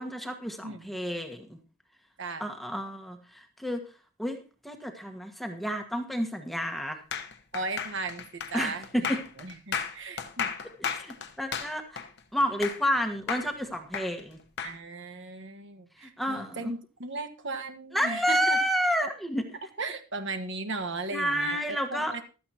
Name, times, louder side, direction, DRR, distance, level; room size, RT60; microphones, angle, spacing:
voice 1, 0.0-1.6 2.4-3.8 4.2-4.4 4.6-7.0 8.5-9.2 10.8-12.0 12.3-14.4 16.0-16.7 17.9-19.6 21.1-22.1, equal, ahead, 4 dB, 1.4 m, -30 dB
sound 1, 7.1-13.0 13.3-14.8, left 6 dB, 50° left, 1.1 m, -34 dB
voice 2, 7.5-10.5 14.6-18.6 19.8-22.2, right 3 dB, 55° right, 7 dB, 1.4 m, -37 dB
15.5 x 13.0 x 2.9 m, 0.34 s
head